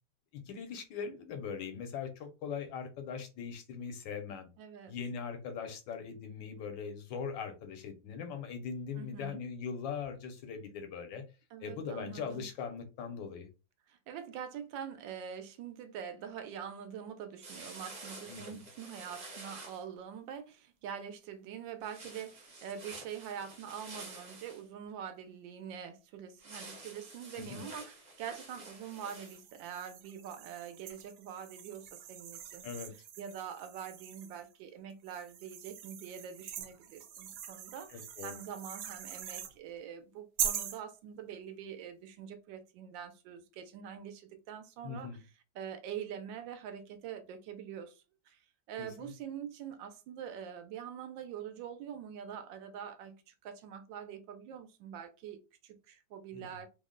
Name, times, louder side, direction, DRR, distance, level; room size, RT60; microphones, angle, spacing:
voice 1, 0.3-4.5 4.9-11.2 11.6-13.5 18.3-18.6 27.4-27.7 32.6-32.9 37.9-38.4 44.8-45.2 48.8-49.1 56.3-56.5, left 6 dB, 80° left, 1.4 m, -41 dB
voice 2, 4.6-4.9 9.0-9.4 11.5-12.5 13.9-32.7 33.2-45.1 45.5-48.4 48.7-56.7, right 8 dB, 85° right, 1.3 m, -44 dB
sound 1, 17.4-19.8 21.8-24.6 26.4-29.4, right 2 dB, 40° right, 0.6 m, -49 dB
sound 2, 28.9-34.5 35.1-39.5 40.4-40.8, right 9 dB, 70° right, 1.1 m, -42 dB
3.4 x 2.1 x 3.7 m
omnidirectional pair, 2.0 m